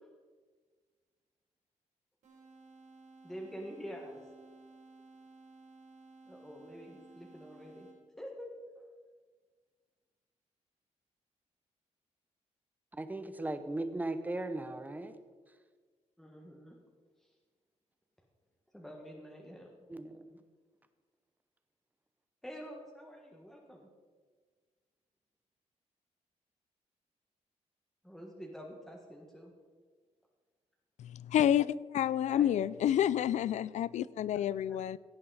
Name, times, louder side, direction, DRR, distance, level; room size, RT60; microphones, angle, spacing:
sound 1, 2.2-8.3, right 3 dB, 80° right, 3.9 m, -56 dB
voice 1, 3.2-4.2 6.3-7.9 8.2-8.5 16.2-16.8 18.7-19.7 22.4-23.9 28.0-29.5 32.3-32.5 34.3-34.4 34.7-34.8, equal, ahead, -1 dB, 1.5 m, -47 dB
voice 2, 12.9-15.1 19.9-20.4, right 2 dB, 15° right, 10 dB, 0.8 m, -37 dB
voice 3, 31.0-35.0, left 10 dB, 75° left, 20 dB, 0.4 m, -29 dB
16.5 x 8.7 x 4.1 m, 1.5 s
cardioid pair, 130°, 12 cm